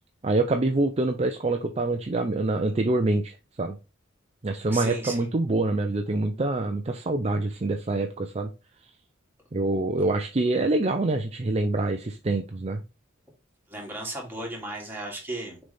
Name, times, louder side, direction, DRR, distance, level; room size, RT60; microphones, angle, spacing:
voice 1, 0.2-3.8 4.4-8.5 9.5-12.8, right 2 dB, 35° right, 5 dB, 0.5 m, -26 dB
voice 2, 4.7-5.2 13.7-15.6, right 2 dB, 10° right, -2 dB, 2.4 m, -35 dB
6.6 x 4.1 x 3.5 m, 0.29 s
head